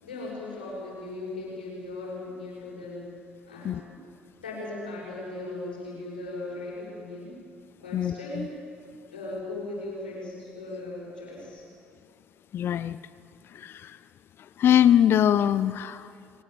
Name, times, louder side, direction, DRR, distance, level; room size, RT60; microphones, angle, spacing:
voice 1, 0.0-3.1 3.5-3.9 4.4-7.4 7.8-8.5 9.1-11.6, left 2 dB, 90° left, -5 dB, 7.7 m, -38 dB
voice 2, 7.9-8.5 12.5-13.0 13.5-14.0 14.6-16.1, left 10 dB, 55° left, 16 dB, 0.7 m, -22 dB
23.0 x 20.0 x 7.9 m, 2.3 s
hypercardioid pair, 55°, 5 cm